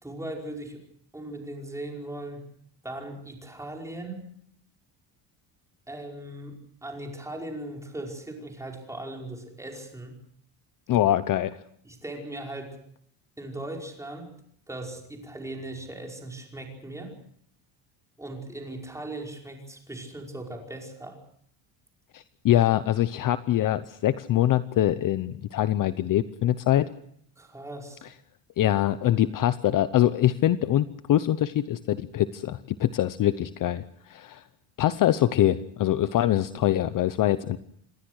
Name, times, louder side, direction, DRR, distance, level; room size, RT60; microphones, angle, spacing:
voice 1, 0.0-0.8 1.1-2.4 2.8-4.3 5.9-10.2 11.8-12.8 13.4-14.3 14.7-17.1 18.2-21.2 27.4-28.0, right 1 dB, 5° right, 1 dB, 5.2 m, -38 dB
voice 2, 10.9-11.6 22.1-26.9 28.6-34.4 34.8-37.6, left 12 dB, 40° left, 13 dB, 0.8 m, -24 dB
27.5 x 20.5 x 6.4 m, 0.66 s
cardioid pair, 170°, 47 cm